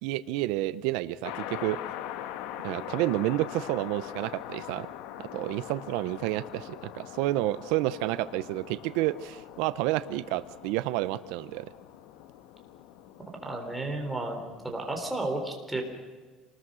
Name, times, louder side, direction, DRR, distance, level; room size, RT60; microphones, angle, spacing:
voice 1, 0.0-1.8 2.6-4.9 5.2-11.7, right 16 dB, 80° right, 14 dB, 0.7 m, -30 dB
sound 1, 1.2-15.2, left 11 dB, 80° left, 1.3 m, -42 dB
voice 2, 13.4-14.4 14.6-15.8, right 2 dB, 5° right, 1 dB, 3.6 m, -32 dB
27.5 x 20.0 x 6.3 m, 1.4 s
cardioid pair, 165°, 0 cm